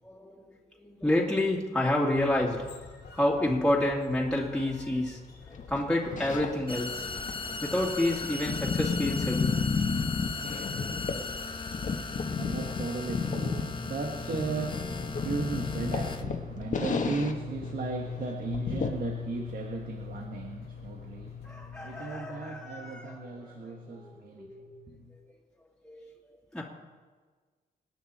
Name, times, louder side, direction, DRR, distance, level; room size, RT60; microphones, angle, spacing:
voice 1, 0.0-0.5 0.8-2.7 3.1-5.2 5.5-7.1 7.6-9.6 21.4-24.8 25.8-26.1 26.5-26.6, left 1 dB, 5° left, -4 dB, 2.7 m, -29 dB
sound 1, 2.1-22.1, left 5 dB, 85° left, 2.2 m, -52 dB
sound 2, 5.6-6.7 7.1-11.3 11.7-17.4 17.6-17.7 18.1-18.2 18.5-18.9, left 5 dB, 50° left, 1.5 m, -32 dB
sound 3, 6.7-16.2, left 4 dB, 30° left, 1.2 m, -38 dB
voice 2, 11.9-25.1, right 2 dB, 60° right, 2 dB, 1.6 m, -35 dB
27.0 x 9.5 x 4.3 m, 1.4 s
cardioid pair, 105°, 16 cm